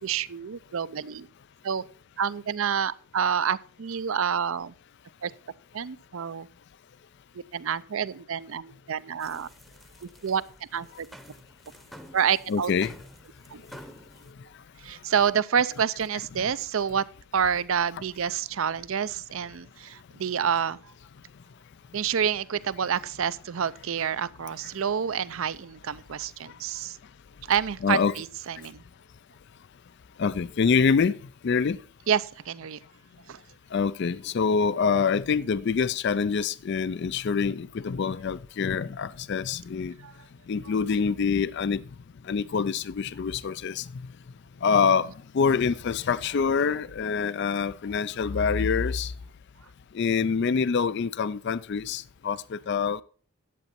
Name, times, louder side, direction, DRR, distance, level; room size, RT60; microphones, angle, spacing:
voice 1, 0.0-1.3 1.6-1.8 2.2-4.7 5.2-5.3 5.7-6.5 7.5-9.5 10.0-10.4 10.7-11.1 12.1-12.7 13.5-13.6 14.8-17.0 17.3-20.8 21.9-27.0 27.5-28.8 32.1-32.8 33.3-33.4 40.0-40.1 40.6-40.7, right 7 dB, 65° right, 0.5 m, -28 dB
sound 1, 9.2-14.3, equal, ahead, 0.8 m, -50 dB
voice 2, 12.5-12.9 27.8-28.1 30.2-31.2 31.4-31.8 33.7-39.9 40.5-41.8 42.3-43.8 44.6-49.1 49.9-53.0, left 5 dB, 50° left, 0.4 m, -25 dB
11.0 x 8.2 x 4.2 m
head